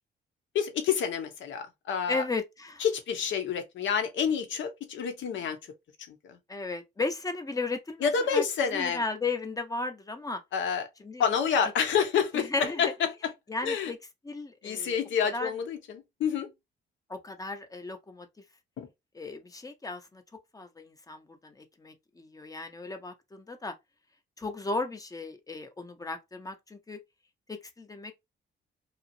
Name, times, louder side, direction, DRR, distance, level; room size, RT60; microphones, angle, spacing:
voice 1, 0.5-2.2 2.8-5.6 6.1-6.4 8.0-9.0 10.5-10.9 11.2-13.1 13.6-13.9 14.6-16.5 18.8-18.9, left 7 dB, 70° left, 0.9 m, -28 dB
voice 2, 2.1-2.8 6.5-8.4 8.7-10.4 11.0-11.3 12.3-12.9 13.5-14.0 14.2-15.0 15.3-15.5 17.1-18.3 19.1-20.2 20.5-23.7 24.4-27.0 27.5-28.1, left 3 dB, 15° left, 0.7 m, -35 dB
2.9 x 2.5 x 2.6 m
cardioid pair, 90°, 20 cm